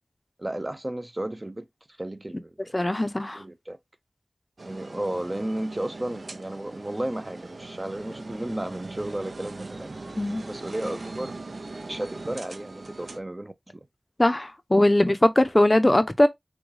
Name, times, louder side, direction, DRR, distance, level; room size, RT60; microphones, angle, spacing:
voice 1, 0.4-1.7 2.0-2.7 3.3-3.8 4.6-10.0 10.5-11.4 11.8-13.5, right 1 dB, 25° right, 0.5 m, -33 dB
voice 2, 2.7-3.4 10.2-10.4 14.2-16.3, left 1 dB, 25° left, 0.5 m, -20 dB
sound 1, 4.6-13.2, right 3 dB, 75° right, 0.6 m, -40 dB
6.1 x 2.2 x 3.1 m
wide cardioid pair, 70°, 0 cm